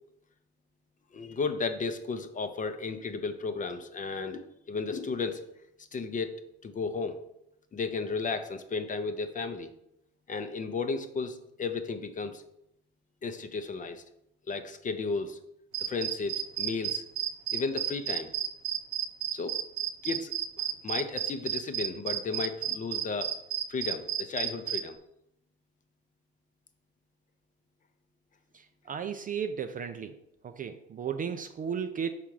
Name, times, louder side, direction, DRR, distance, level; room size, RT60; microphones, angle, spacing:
voice 1, 1.1-5.4 5.9-7.2 7.7-9.7 10.3-12.4 13.2-14.0 14.5-15.4 15.9-17.0 17.5-18.3 19.3-19.6 20.0-20.3 20.6-23.3 23.7-25.0, left 4 dB, 25° left, 9 dB, 0.6 m, -34 dB
sound 1, 15.7-24.8, right 11 dB, 60° right, 0.9 m, -31 dB
voice 2, 28.5-30.1 30.4-32.1, right 7 dB, 25° right, 7 dB, 0.4 m, -34 dB
5.7 x 3.6 x 4.6 m, 0.80 s
hypercardioid pair, 65°, 31 cm